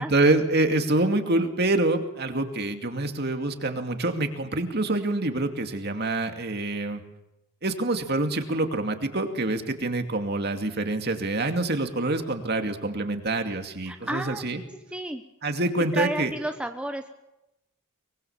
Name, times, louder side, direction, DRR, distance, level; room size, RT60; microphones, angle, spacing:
voice 1, 0.0-7.0 7.6-14.6 15.4-16.3, right 2 dB, 50° right, 6 dB, 2.5 m, -26 dB
voice 2, 13.8-14.4 14.9-15.2 15.9-17.1, right 1 dB, 5° right, 5 dB, 1.1 m, -31 dB
24.0 x 23.0 x 7.3 m, 0.92 s
head